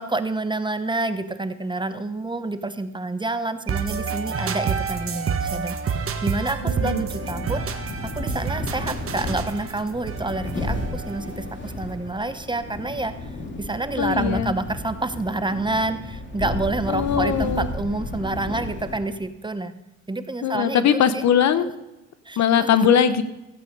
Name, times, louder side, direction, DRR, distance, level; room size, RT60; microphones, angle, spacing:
voice 1, 0.0-7.7 8.1-13.1 13.6-19.7 20.1-21.2 22.3-22.7, right 2 dB, 15° right, 11 dB, 0.9 m, -28 dB
sound 1, 3.7-11.5, right 6 dB, 45° right, 1.3 m, -29 dB
sound 2, 6.5-19.3, left 1 dB, 40° left, 2.7 m, -33 dB
voice 2, 6.6-7.0 14.0-14.5 16.9-17.7 20.4-21.7 22.4-23.2, left 8 dB, 65° left, 12 dB, 1.0 m, -20 dB
15.0 x 8.5 x 5.3 m, 0.98 s
cardioid pair, 90°, 30 cm